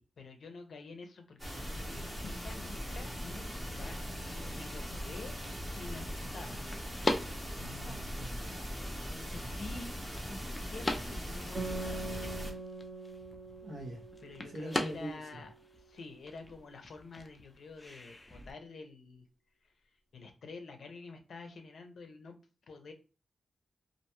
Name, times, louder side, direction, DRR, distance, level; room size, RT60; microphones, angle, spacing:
voice 1, 0.0-3.5 3.7-4.0 4.4-5.4 5.7-6.7 8.9-10.0 10.3-12.3 14.2-15.5 15.9-19.3 19.6-19.7 20.1-22.4 22.7-22.9, left 3 dB, 75° left, 5 dB, 0.5 m, -48 dB
sound 1, 1.4-12.5, equal, 10° right, 0.8 m, -40 dB
sound 2, 3.1-18.5, left 1 dB, 20° left, 0.3 m, -42 dB
voice 2, 7.6-8.5 11.4-11.5 13.6-14.0 14.4-15.4, right 1 dB, 60° right, 0 dB, 0.8 m, -44 dB
Guitar, 11.5-16.5, right 3 dB, 30° right, 1.1 m, -44 dB
2.4 x 2.2 x 2.9 m, 0.33 s
wide cardioid pair, 180°, 0 cm